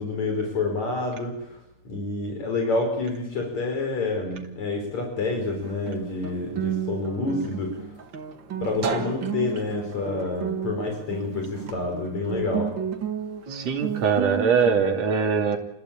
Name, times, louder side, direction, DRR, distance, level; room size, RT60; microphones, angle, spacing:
voice 1, 0.0-1.6 1.8-8.0 8.6-12.7, left 3 dB, 70° left, 3 dB, 6.3 m, -28 dB
Guitar, 5.4-14.8, right 8 dB, 45° right, 2.2 m, -32 dB
voice 2, 13.5-15.6, right 6 dB, 60° right, 2 dB, 3.7 m, -22 dB
29.5 x 21.0 x 8.9 m, 0.83 s
omnidirectional pair, 3.3 m